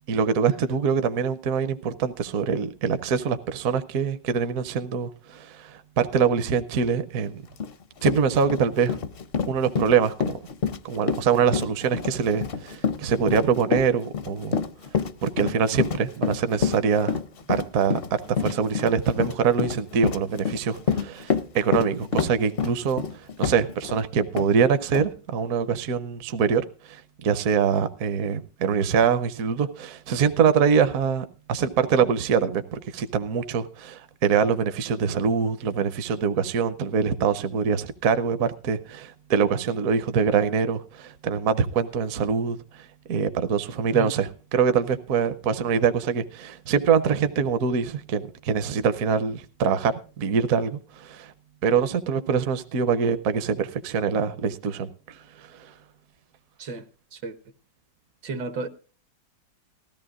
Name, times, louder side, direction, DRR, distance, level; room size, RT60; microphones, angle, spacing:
voice 1, 0.1-7.4 8.0-9.0 9.4-10.4 10.8-14.6 15.2-17.2 17.5-42.6 43.1-51.3 51.6-55.7, right 6 dB, 60° right, 1.1 m, -24 dB
Run, 7.6-7.7 8.0-24.0 24.4-24.5 24.9-25.1, left 6 dB, 55° left, 0.6 m, -27 dB
voice 2, 58.2-58.7, right 3 dB, 80° right, 1.7 m, -32 dB
19.0 x 14.0 x 2.4 m
omnidirectional pair, 1.9 m